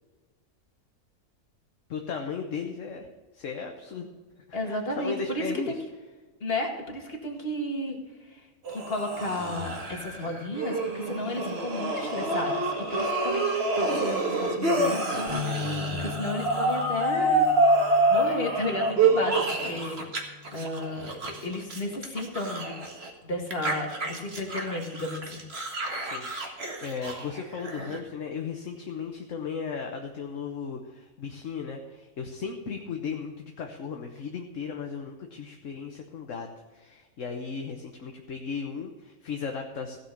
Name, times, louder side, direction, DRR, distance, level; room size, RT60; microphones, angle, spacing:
voice 1, 1.9-3.1 3.3-4.1 4.5-5.8 26.0-40.0, left 5 dB, 60° left, 3 dB, 1.3 m, -36 dB
voice 2, 4.5-5.8 6.4-8.0 8.3-8.4 8.7-13.4 13.8-17.5 18.1-20.0 20.5-22.8 23.2-25.5, left 1 dB, 40° left, 1 dB, 2.2 m, -33 dB
sound 1, 8.7-20.2 20.4-23.1 23.5-28.0, right 2 dB, 45° right, 1.9 m, -27 dB
sound 2, 15.3-21.5, left 7 dB, 15° right, 3.9 m, -40 dB
16.0 x 5.8 x 6.8 m, 1.3 s
omnidirectional pair, 1.5 m